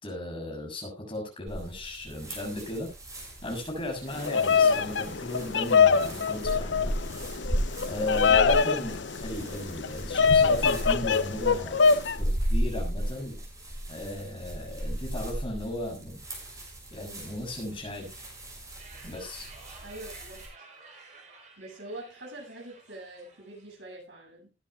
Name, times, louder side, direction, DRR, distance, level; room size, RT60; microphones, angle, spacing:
voice 1, 0.0-2.9 3.4-7.0 7.9-11.8 12.2-13.4 13.9-16.2 16.5-16.6 16.9-18.1 19.0-19.5, left 1 dB, 30° left, 0 dB, 6.8 m, -36 dB
sound 1, 1.5-20.5, right 1 dB, 20° right, 6.4 m, -36 dB
Bird vocalization bird call bird song, 4.1-12.2, left 5 dB, 80° left, 0.7 m, -24 dB
voice 2, 8.0-8.7 19.8-20.4 21.6-24.5, right 1 dB, 80° right, 0 dB, 7.8 m, -44 dB
sound 2, 18.8-23.9, right 3 dB, 40° right, 4.3 m, -52 dB
20.5 x 10.5 x 2.4 m, 0.28 s
head